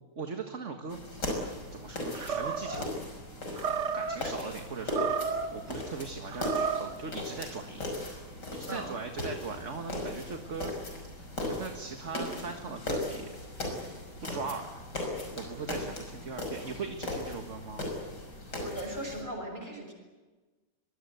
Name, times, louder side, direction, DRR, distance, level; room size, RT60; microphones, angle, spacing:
voice 1, 0.2-2.9 3.9-7.9 8.5-10.7 11.1-13.4 14.2-14.7 15.3-17.8, right 5 dB, 45° right, 4 dB, 2.0 m, -40 dB
sound 1, 0.9-19.2, left 2 dB, 80° left, 6.3 m, -38 dB
Animal, 2.1-2.9 3.5-4.2 4.8-5.6 6.3-6.9, right 6 dB, 80° right, 2.2 m, -32 dB
voice 2, 18.3-19.9, right 1 dB, 25° right, 3 dB, 6.8 m, -39 dB
25.0 x 22.0 x 8.1 m, 1.2 s
omnidirectional pair, 1.8 m